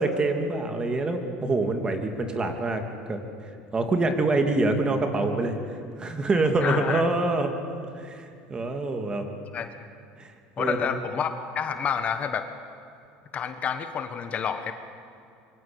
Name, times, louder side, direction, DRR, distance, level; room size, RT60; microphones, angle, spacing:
voice 1, 0.0-2.8 3.1-3.2 3.7-5.6 6.0-7.5 8.0-9.3 10.2-10.3 10.6-11.0, right 2 dB, 20° right, 5 dB, 2.6 m, -25 dB
voice 2, 6.6-7.0 9.5-9.9 10.6-12.5 13.3-14.7, left 7 dB, 35° left, 8 dB, 1.4 m, -29 dB
24.0 x 23.5 x 8.6 m, 2.5 s
supercardioid pair, 130°, 4 cm